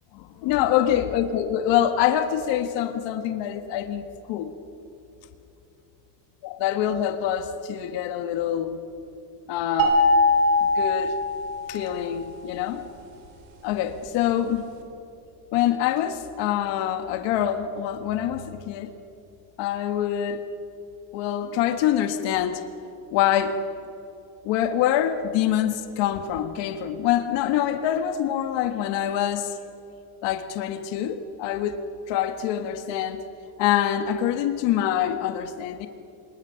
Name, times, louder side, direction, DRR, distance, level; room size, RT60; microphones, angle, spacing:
voice 1, 0.1-4.5 6.4-8.8 9.5-10.0 10.6-11.1 11.7-12.9 13.6-14.7 15.5-18.9 19.6-20.4 21.1-22.6 23.1-23.6 24.4-29.6 30.2-31.8 32.1-33.2 33.6-35.9, left 10 dB, 75° left, 8 dB, 1.6 m, -25 dB
sound 1, 9.8-12.0, left 2 dB, 75° right, 3.6 m, -21 dB
26.0 x 21.0 x 5.8 m, 2.7 s
cardioid pair, 175°, 45 cm